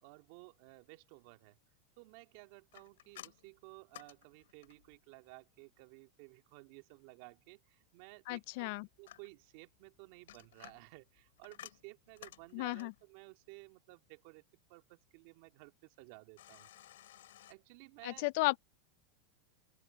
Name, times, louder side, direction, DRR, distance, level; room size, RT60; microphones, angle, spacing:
voice 1, 0.0-1.6 2.0-14.4 14.7-16.7 17.5-18.2, right 26 dB, 60° right, 2.0 m, -56 dB
sound 1, 2.7-5.0 8.3-9.6 10.1-13.1 16.4-17.5, left 13 dB, 80° left, 5.6 m, -55 dB
voice 2, 8.3-8.9 12.5-12.9 18.0-18.6, left 24 dB, 60° left, 0.4 m, -34 dB
open air
supercardioid pair, 130°, 0 cm